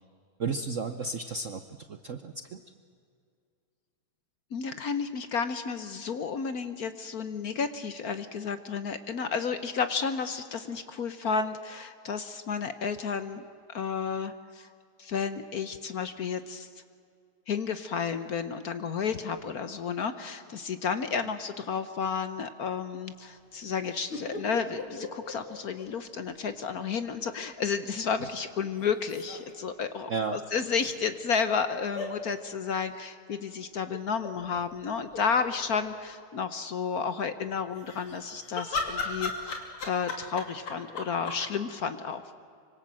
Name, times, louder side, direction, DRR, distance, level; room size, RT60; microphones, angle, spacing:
voice 1, 0.4-1.6 1.9-2.6 28.2-28.3 30.1-30.4, right 4 dB, 55° right, 8 dB, 0.9 m, -33 dB
voice 2, 4.5-14.7 15.0-16.7 17.5-42.3, left 6 dB, 55° left, 11 dB, 1.2 m, -32 dB
sound 1, 24.1-26.3 26.6-26.7 28.8-29.5 30.8-31.0 31.9-32.1 33.9-34.3 34.8-34.9 35.1-35.8 37.8-41.4, left 3 dB, 85° left, 3.6 m, -36 dB
25.0 x 25.0 x 7.6 m, 2.3 s
omnidirectional pair, 2.3 m